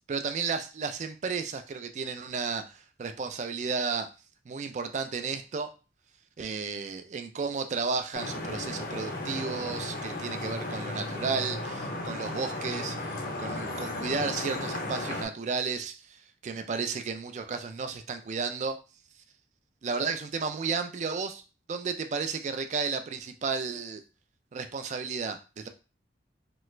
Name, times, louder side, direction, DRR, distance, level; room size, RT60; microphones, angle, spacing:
voice 1, 0.1-4.1 4.5-5.7 6.4-18.8 19.8-21.4 21.7-24.0 24.5-25.7, right 5 dB, 40° right, 8 dB, 0.3 m, -33 dB
Vehicle horn car horn honking / Traffic noise roadway noise, 8.1-15.2, left 2 dB, 55° left, 0.6 m, -35 dB
3.0 x 2.4 x 3.2 m, 0.33 s
head